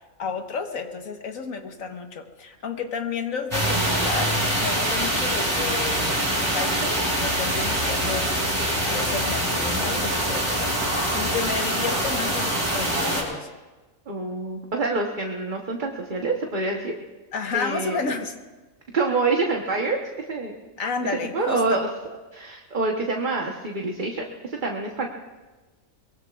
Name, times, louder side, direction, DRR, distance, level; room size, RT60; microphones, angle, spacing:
voice 1, 0.2-6.2 6.5-8.3 8.6-13.5 17.3-18.3 20.8-21.8, left 5 dB, 85° left, 5 dB, 1.7 m, -31 dB
sound 1, 3.5-13.2, right 1 dB, 20° right, 4.6 m, -24 dB
voice 2, 14.1-16.9 17.5-17.9 18.9-20.0 20.3-20.6 21.3-21.9 22.3-25.1, right 3 dB, 40° right, 1 dB, 1.2 m, -26 dB
23.5 x 22.0 x 2.4 m, 1.2 s
omnidirectional pair, 1.4 m